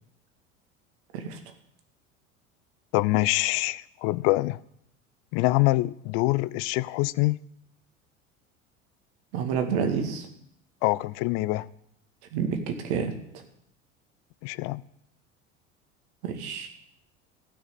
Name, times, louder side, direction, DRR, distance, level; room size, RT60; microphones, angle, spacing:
voice 1, 2.9-4.6 5.3-7.4 10.8-11.7 14.4-14.8, left 20 dB, 40° left, 0.4 m, -25 dB
voice 2, 9.3-10.3 12.3-13.2 16.2-16.7, right 6 dB, 55° right, 2.1 m, -28 dB
15.0 x 6.4 x 8.4 m
figure-of-eight pair, 70°, 39 cm